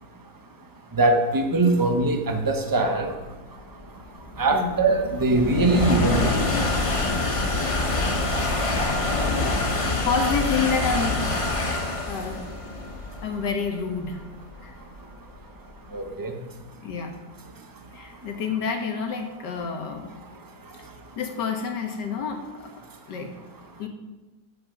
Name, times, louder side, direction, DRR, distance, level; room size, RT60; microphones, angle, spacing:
voice 1, 0.9-3.1 4.4-6.4 15.9-16.3, right 2 dB, 15° right, 5 dB, 0.8 m, -22 dB
sound 1, 2.6-16.0, left 2 dB, 20° left, 1.0 m, -26 dB
voice 2, 10.0-11.2 12.1-12.5 13.2-14.2 14.6-14.7 16.8-17.1 17.9-20.2 21.2-22.7 23.1-23.3 23.8-23.9, left 5 dB, 75° left, 4 dB, 1.9 m, -28 dB
13.0 x 8.3 x 5.2 m, 1.1 s
omnidirectional pair, 1.9 m